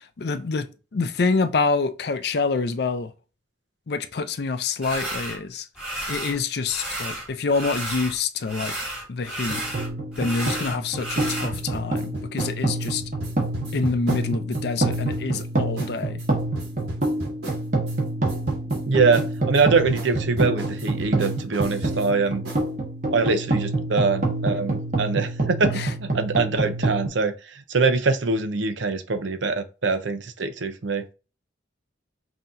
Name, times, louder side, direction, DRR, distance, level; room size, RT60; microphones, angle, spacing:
voice 1, 0.0-3.1 3.9-5.7 6.1-8.8 9.1-9.6 10.2-13.0 13.7-16.2 25.7-25.9, left 4 dB, 60° left, 0.5 m, -26 dB
sound 1, 4.8-5.4 5.8-6.4 6.7-8.2 8.4-11.5, right 1 dB, 5° right, 1.8 m, -32 dB
sound 2, 9.5-27.1, right 2 dB, 45° right, 1.2 m, -27 dB
sound 3, 11.5-14.6 14.9-15.5 15.8-15.9 16.2-18.0 18.3-18.8 19.1-22.1 22.5-22.6, right 1 dB, 65° right, 2.1 m, -36 dB
voice 2, 18.9-22.4 23.1-31.0, right 4 dB, 90° right, 0.7 m, -23 dB
5.6 x 2.9 x 2.6 m
head